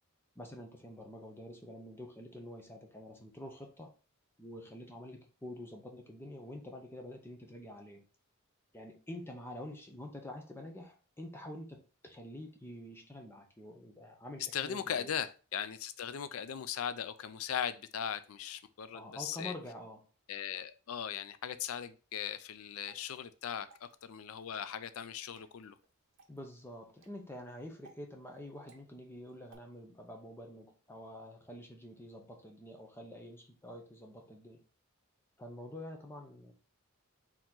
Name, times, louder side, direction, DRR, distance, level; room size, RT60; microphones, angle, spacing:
voice 1, 0.4-3.9 4.4-8.0 8.7-15.1 18.9-20.0 26.3-34.6 35.4-36.5, left 1 dB, 10° left, 2 dB, 0.7 m, -47 dB
voice 2, 14.5-19.5 20.3-25.8, left 8 dB, 85° left, 13 dB, 0.4 m, -39 dB
Water / Drip, 22.6-29.6, right 4 dB, 60° right, 0.9 m, -65 dB
4.6 x 2.9 x 3.7 m, 0.34 s
head